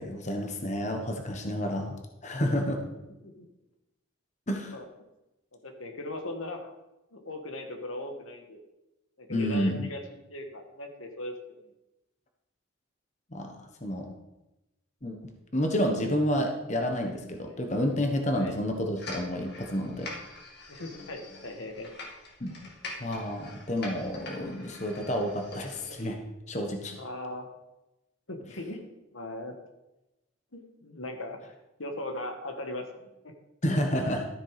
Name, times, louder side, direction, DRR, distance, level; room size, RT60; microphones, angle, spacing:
voice 1, 0.0-1.9 2.2-2.8 4.5-4.7 9.3-9.9 13.3-14.1 15.0-20.1 22.4-22.5 23.0-26.2 26.5-26.9 33.6-34.3, equal, 35° left, 3 dB, 1.3 m, -30 dB
voice 2, 5.6-6.7 7.1-8.6 9.2-10.0 10.3-11.6 17.4-17.6 18.3-18.6 20.7-21.9 26.9-27.5 28.3-28.8 29.1-29.6 30.5-31.4 31.8-33.3, left 1 dB, 90° left, 4 dB, 1.7 m, -39 dB
sound 1, 19.0-26.1, left 2 dB, 55° left, 2.4 m, -44 dB
13.0 x 7.3 x 4.9 m, 0.95 s
head